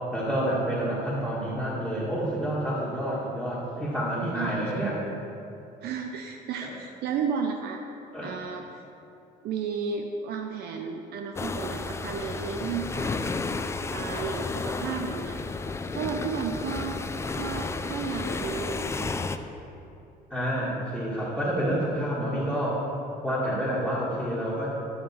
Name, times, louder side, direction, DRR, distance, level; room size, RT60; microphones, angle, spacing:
voice 1, 0.1-5.0 8.1-8.4 20.3-22.8 23.2-24.7, right 1 dB, 5° right, -9 dB, 1.7 m, -28 dB
voice 2, 4.3-5.0 5.8-7.8 8.2-8.8 9.4-13.2 13.9-15.6 15.9-17.0 17.4-19.3, right 6 dB, 70° right, 4 dB, 0.6 m, -33 dB
sound 1, 11.4-19.4, left 3 dB, 15° left, 0.3 m, -32 dB
10.5 x 5.5 x 4.3 m, 2.8 s
cardioid pair, 110°, 17 cm